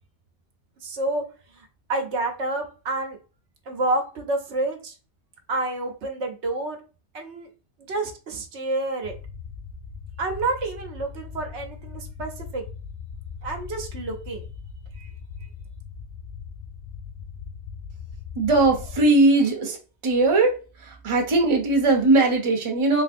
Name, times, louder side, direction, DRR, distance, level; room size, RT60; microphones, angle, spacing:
voice 1, 0.8-1.3 1.5-3.2 3.7-4.9 5.5-6.8 7.1-7.5 7.9-9.1 10.2-12.6 13.4-14.4 15.0-15.1, right 2 dB, 80° right, 1.1 m, -29 dB
sound 1, 9.0-19.0, left 6 dB, 80° left, 0.9 m, -39 dB
voice 2, 18.4-19.8 20.0-20.5 20.8-23.0, right 2 dB, 30° right, 0.7 m, -19 dB
3.2 x 3.2 x 2.5 m
omnidirectional pair, 1.1 m